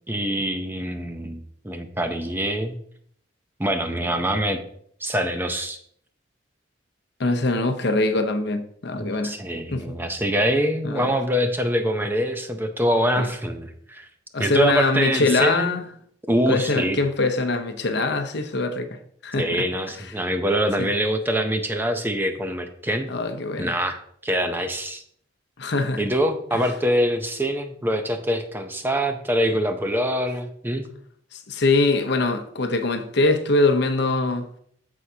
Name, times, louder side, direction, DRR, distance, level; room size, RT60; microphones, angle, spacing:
voice 1, 0.1-1.4 1.6-2.8 3.6-4.6 5.0-5.8 9.0-14.1 14.4-15.7 16.3-17.0 19.4-23.1 23.6-24.0 24.2-25.0 26.0-30.9, equal, 10° right, 0.6 m, -24 dB
voice 2, 7.2-9.3 9.7-9.9 10.8-11.2 13.2-13.3 14.3-15.9 16.5-18.9 19.2-19.6 20.8-20.9 23.1-23.7 25.6-26.0 26.5-26.6 31.3-34.4, left 2 dB, 60° left, 0.8 m, -23 dB
13.5 x 4.8 x 2.8 m
head